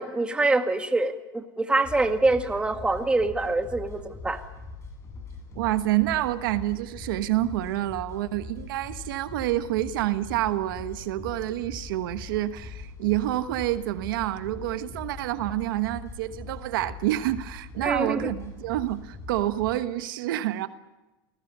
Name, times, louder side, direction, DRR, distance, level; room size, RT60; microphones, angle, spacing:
voice 1, 0.0-4.4 17.8-18.3, right 2 dB, 10° right, 2.0 m, -25 dB
sound 1, 1.8-19.7, left 3 dB, 25° left, 7.3 m, -42 dB
voice 2, 5.5-20.7, right 15 dB, 90° right, 1.3 m, -28 dB
28.5 x 19.5 x 6.8 m
supercardioid pair, 135°, 11 cm